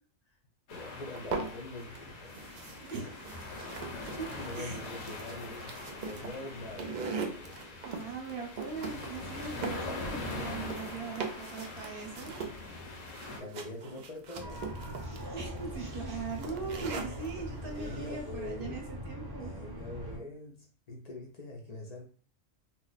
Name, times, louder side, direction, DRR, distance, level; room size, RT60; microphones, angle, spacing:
sound 1, 0.7-13.4, left 3 dB, 75° left, 1.1 m, -43 dB
voice 1, 0.7-2.4 2.9-3.1 4.0-8.1 12.9-14.6 16.9-17.0 17.4-18.8 19.3-22.0, left 2 dB, 50° left, 1 dB, 0.5 m, -45 dB
sound 2, 1.1-2.0 2.3-17.3, right 4 dB, 80° right, 0.4 m, -41 dB
voice 2, 2.8-3.1 4.2-4.8 7.8-12.4 15.3-19.5, right 4 dB, 50° right, 2 dB, 0.9 m, -40 dB
sound 3, 14.4-20.2, equal, 25° right, 0.6 m, -41 dB
2.9 x 2.1 x 3.9 m, 0.41 s
omnidirectional pair, 1.4 m